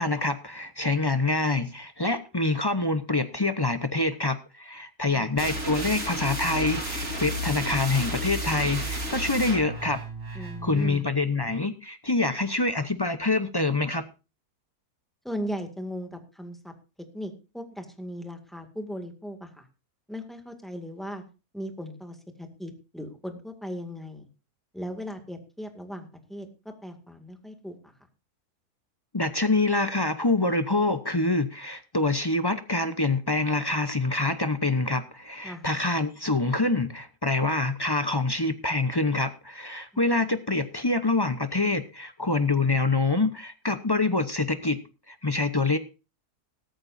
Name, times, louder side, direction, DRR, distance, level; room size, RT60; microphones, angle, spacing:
voice 1, 0.0-10.0 10.3-14.0 29.1-44.8 45.1-45.8, left 2 dB, 25° left, 10 dB, 0.6 m, -26 dB
sound 1, 5.4-11.0, equal, 55° right, 4.3 m, -32 dB
voice 2, 10.3-11.1 15.2-16.7 17.1-19.7 20.1-21.2 21.5-24.3 24.7-26.5 26.8-27.9 35.4-35.6, equal, ahead, 4 dB, 2.0 m, -37 dB
17.0 x 14.0 x 2.6 m, 0.31 s
omnidirectional pair, 1.7 m